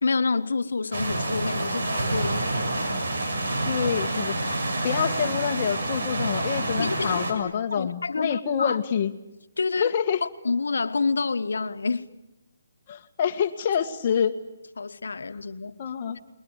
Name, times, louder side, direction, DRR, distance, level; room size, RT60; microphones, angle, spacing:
voice 1, 0.0-2.7 6.8-8.8 9.6-9.9 10.2-12.1 14.8-15.7, left 4 dB, 75° left, 10 dB, 1.4 m, -28 dB
sound 1, 0.9-7.3, right 2 dB, 60° right, 5.9 m, -28 dB
voice 2, 3.7-9.1 9.8-10.2 12.9-14.4 15.8-16.2, left 8 dB, 30° left, 5 dB, 1.7 m, -27 dB
29.5 x 21.5 x 9.0 m, 0.95 s
hypercardioid pair, 170°, 0 cm